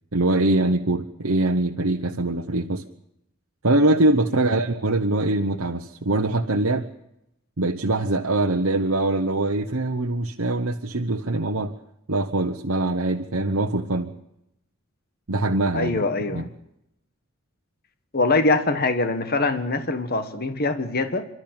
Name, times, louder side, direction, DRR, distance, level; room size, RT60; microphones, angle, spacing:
voice 1, 0.1-2.8 3.6-6.9 7.6-11.7 12.1-14.1 15.3-16.0 16.3-16.5, right 2 dB, 65° right, 2 dB, 1.1 m, -23 dB
voice 2, 15.7-16.5 18.1-21.2, left 3 dB, 45° left, 9 dB, 1.4 m, -23 dB
30.0 x 12.5 x 8.9 m, 0.84 s
head